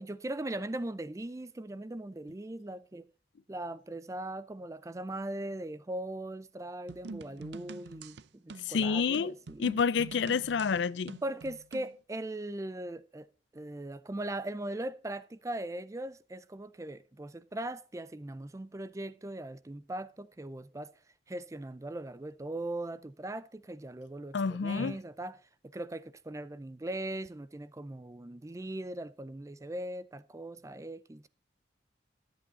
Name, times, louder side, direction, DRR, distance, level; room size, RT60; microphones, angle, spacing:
voice 1, 0.0-3.1 3.5-9.6 11.2-13.3 13.5-20.9 21.3-25.4 25.7-31.3, right 1 dB, 15° right, 0.4 m, -39 dB
sound 1, 6.9-12.0, right 3 dB, 65° right, 0.5 m, -46 dB
voice 2, 8.7-9.3 9.6-11.2 24.3-25.0, left 5 dB, 75° left, 0.4 m, -29 dB
12.5 x 8.5 x 4.0 m
head